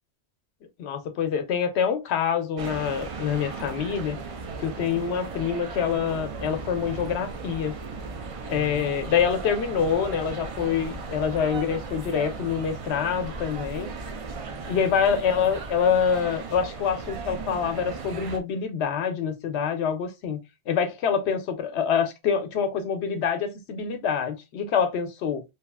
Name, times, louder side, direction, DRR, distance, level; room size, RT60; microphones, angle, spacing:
voice 1, 0.8-4.2 4.6-7.7 8.5-13.9 14.7-20.4 20.7-25.4, left 7 dB, 85° left, 0.9 m, -26 dB
sound 1, 2.6-18.4, right 4 dB, 55° right, 0.3 m, -36 dB
3.1 x 2.4 x 2.2 m
omnidirectional pair, 1.1 m